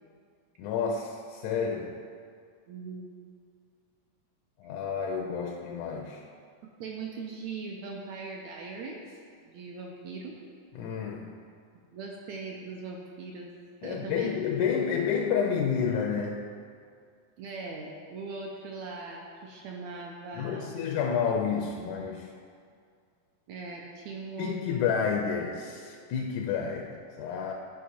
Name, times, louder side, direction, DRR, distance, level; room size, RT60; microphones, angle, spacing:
voice 1, 0.6-2.0 4.6-6.2 10.8-11.3 13.8-16.5 20.4-22.3 24.4-27.5, left 6 dB, 80° left, 2 dB, 1.8 m, -30 dB
voice 2, 2.7-3.1 6.8-10.4 11.9-13.5 13.8-14.3 17.4-20.8 23.5-24.8, right 4 dB, 80° right, -1 dB, 1.6 m, -40 dB
10.5 x 4.9 x 4.3 m, 2.2 s
omnidirectional pair, 3.8 m